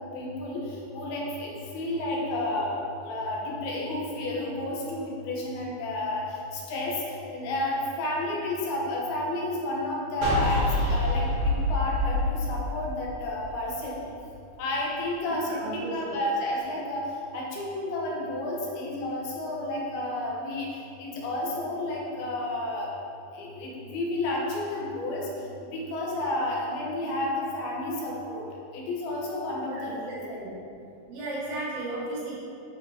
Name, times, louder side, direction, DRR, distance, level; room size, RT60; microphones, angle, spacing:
voice 1, 0.0-14.0 14.6-22.9 23.3-25.3 25.6-28.4 28.7-30.4, left 1 dB, 70° left, -3 dB, 2.6 m, -31 dB
sound 1, 10.2-13.4, left 1 dB, 90° right, 4.3 m, -26 dB
voice 2, 15.3-16.2 29.6-30.5 31.1-32.4, right 2 dB, 70° right, -6 dB, 3.6 m, -35 dB
10.0 x 7.2 x 2.9 m, 2.6 s
omnidirectional pair, 5.4 m